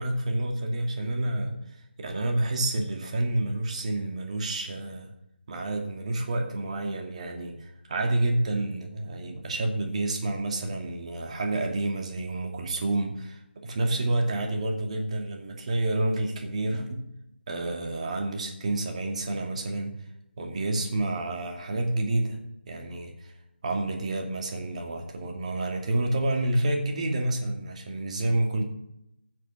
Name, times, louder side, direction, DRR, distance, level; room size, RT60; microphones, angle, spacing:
voice 1, 0.0-1.5 2.0-5.1 5.5-17.0 17.5-19.9 20.4-22.4 22.7-23.3 23.6-28.6, right 2 dB, 35° right, 2 dB, 2.5 m, -29 dB
15.0 x 7.7 x 6.2 m, 0.82 s
figure-of-eight pair, 155°, 6 cm